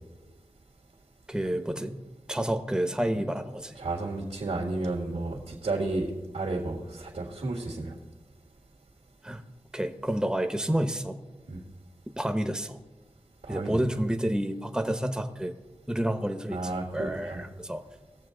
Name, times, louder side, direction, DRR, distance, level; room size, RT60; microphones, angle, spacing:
voice 1, 1.3-2.0 2.3-3.7 9.2-9.4 9.7-11.2 12.2-12.8 13.5-15.5 15.9-17.8, right 1 dB, 5° right, 7 dB, 0.9 m, -29 dB
voice 2, 3.8-6.1 6.3-7.9 11.5-11.6 13.4-13.8 16.5-17.5, right 2 dB, 85° right, -2 dB, 1.7 m, -32 dB
19.5 x 7.4 x 3.8 m, 1.2 s
wide cardioid pair, 55°, 11 cm